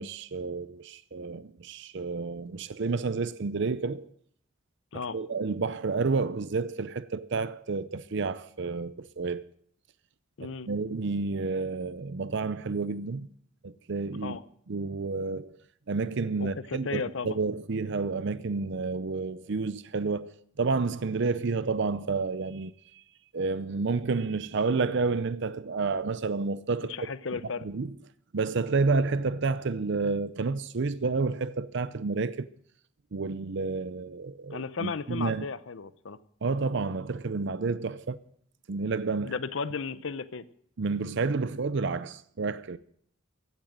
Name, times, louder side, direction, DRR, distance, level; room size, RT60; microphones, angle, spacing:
voice 1, 0.0-4.1 5.1-9.4 10.7-13.3 13.6-14.4 14.7-15.6 15.9-22.7 23.3-27.0 27.6-27.9 28.3-32.5 33.1-35.4 36.4-38.2 38.7-39.3 40.8-42.8, right 4 dB, 60° right, 0.6 m, -30 dB
voice 2, 10.4-10.7 14.2-14.4 16.4-17.4 26.8-27.7 34.5-36.2 39.2-40.4, left 4 dB, 65° left, 0.7 m, -34 dB
15.5 x 9.0 x 7.4 m
head